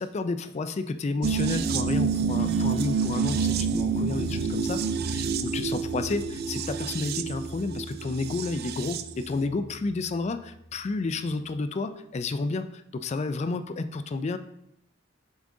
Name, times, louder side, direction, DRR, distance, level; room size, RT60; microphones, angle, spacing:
voice 1, 0.0-4.8 5.1-14.4, left 3 dB, 35° left, 10 dB, 0.3 m, -31 dB
sound 1, 1.2-9.1 9.4-9.5, right 6 dB, 55° right, 0.4 m, -28 dB
sound 2, 1.5-11.6, right 1 dB, 30° right, 1.5 m, -41 dB
7.2 x 3.6 x 3.7 m, 0.75 s
head